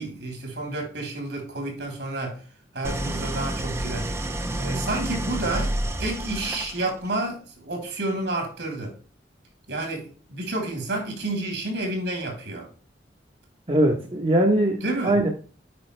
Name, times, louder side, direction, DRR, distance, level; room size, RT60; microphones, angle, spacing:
voice 1, 0.0-2.4 2.7-4.3 4.6-5.7 6.0-8.9 9.7-12.7 14.8-15.2, right 2 dB, 70° right, 3.4 m, -30 dB
Idling, 2.8-7.1, right 1 dB, 15° right, 0.6 m, -29 dB
voice 2, 13.7-15.3, right 1 dB, 30° right, 1.0 m, -21 dB
8.6 x 5.4 x 3.3 m
head